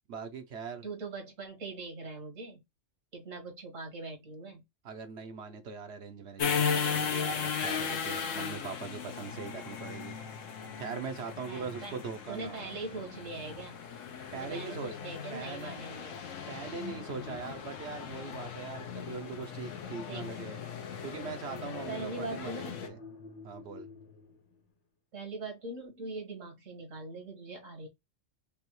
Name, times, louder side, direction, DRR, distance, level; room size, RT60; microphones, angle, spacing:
voice 1, 0.1-0.8 4.8-10.2 10.8-12.7 14.3-15.0 15.3-15.8 16.5-20.6 21.0-23.0 23.4-23.9, right 5 dB, 65° right, 0.9 m, -41 dB
voice 2, 0.8-2.6 3.1-4.6 11.5-12.0 12.3-13.8 14.3-16.3 20.1-20.4 21.9-22.8 25.1-27.9, right 3 dB, 85° right, 2.1 m, -41 dB
sound 1, 6.4-22.9, left 6 dB, 85° left, 1.2 m, -37 dB
sound 2, 17.7-24.6, left 5 dB, 45° left, 1.1 m, -48 dB
5.3 x 2.3 x 3.1 m
omnidirectional pair, 1.3 m